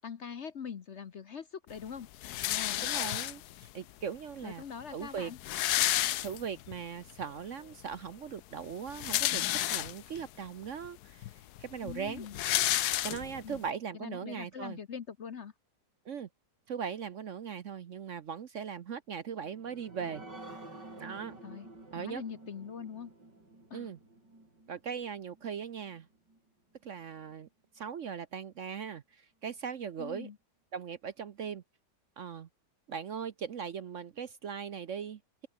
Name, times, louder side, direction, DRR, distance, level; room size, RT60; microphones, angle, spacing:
voice 1, 0.0-2.1 2.4-2.9 4.4-5.4 11.8-12.4 13.4-13.6 13.9-15.5 21.4-21.7 22.0-23.1 23.7-23.9 30.0-30.4, left 7 dB, 50° left, 1.1 m, -43 dB
sound 1, 2.2-3.7 4.5-4.6 4.8-4.9 5.2-6.8 7.2-7.3 8.7-10.2 10.9-11.0 11.2-13.6, left 14 dB, 70° left, 1.1 m, -31 dB
voice 2, 2.8-4.6 4.9-5.3 6.2-9.4 9.7-11.2 11.6-12.3 13.0-14.8 16.1-16.3 16.7-20.2 21.0-21.3 21.9-22.2 23.7-24.0 24.7-26.1 26.8-27.5 27.7-30.3 30.7-31.6 32.2-32.5 32.9-35.2, right 7 dB, 55° right, 1.0 m, -39 dB
sound 2, 19.3-26.4 26.8-26.9 27.3-27.4, right 2 dB, 85° right, 8.1 m, -51 dB
open air
omnidirectional pair, 1.8 m